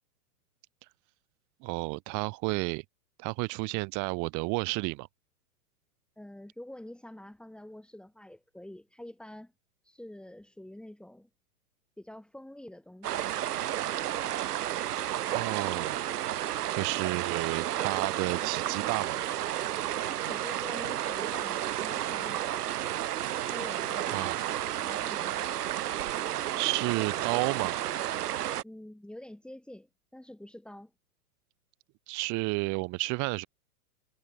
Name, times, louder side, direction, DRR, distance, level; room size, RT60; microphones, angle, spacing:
voice 1, 1.6-2.8 3.2-5.1 15.3-16.1 16.7-19.2 24.1-24.4 25.1-25.4 26.5-27.8 32.1-33.5, right 28 dB, 40° right, 4.4 m, -31 dB
voice 2, 6.2-9.5 9.8-11.3 12.0-13.3 20.0-22.6 23.5-24.3 24.8-25.6 28.6-30.9, left 1 dB, ahead, 7.8 m, -46 dB
sound 1, 13.0-28.6, right 12 dB, 80° right, 0.8 m, -32 dB
hypercardioid pair, 120°, 46 cm